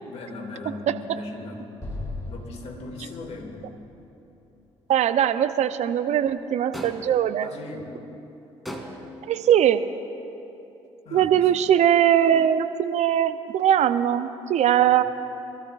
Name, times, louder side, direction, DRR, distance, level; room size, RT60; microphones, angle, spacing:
voice 1, 0.0-1.6 2.3-3.7 7.4-8.0 9.0-9.1 11.0-11.5, left 2 dB, 50° left, 1 dB, 2.6 m, -38 dB
Explosion, 1.8-5.1, left 2 dB, 25° left, 3.5 m, -38 dB
voice 2, 4.9-7.5 9.3-9.8 11.1-15.0, right 10 dB, 55° right, 11 dB, 0.7 m, -21 dB
sound 1, 6.7-7.3 8.7-9.3, equal, ahead, 2.7 m, -37 dB
24.0 x 13.5 x 2.6 m, 2.9 s
hypercardioid pair, 50°, 14 cm